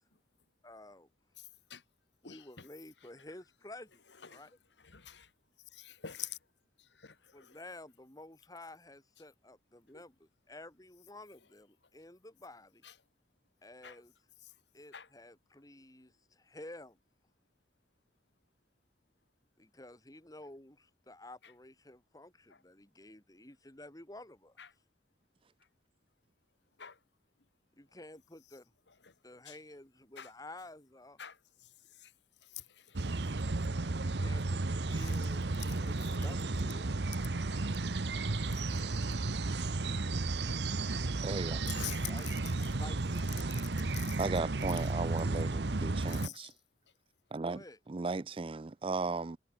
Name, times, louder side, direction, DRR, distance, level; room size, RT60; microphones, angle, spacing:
voice 1, 0.6-1.1 2.2-4.0 4.3-4.5 7.3-12.8 13.6-14.1 14.7-17.0 19.6-24.6 27.8-28.7 29.2-31.2 34.0-36.9 42.0-42.3 42.8-43.4 47.4-47.8, left 2 dB, 20° left, 2.5 m, -51 dB
voice 2, 1.4-1.8 2.2-2.7 4.2-5.3 5.7-6.4 6.8-7.6 9.9-10.0 12.8-13.0 13.8-14.0 14.4-14.6 14.9-15.1 21.4-21.5 22.5-22.6 24.6-24.7 26.8-27.0 28.9-29.2 29.5-29.6 30.1-30.3 31.2-32.1 32.4-33.3 33.8-34.0 34.9-35.2 35.6-36.1 37.2-37.8 38.2-39.2 41.7-42.7 43.6-44.3 44.8-44.9 46.1-46.5, left 10 dB, 90° left, 1.9 m, -48 dB
sound 1, 32.9-46.3, right 2 dB, 75° right, 1.0 m, -33 dB
voice 3, 41.2-41.6 44.2-46.5 47.3-49.4, right 3 dB, 30° right, 0.4 m, -36 dB
head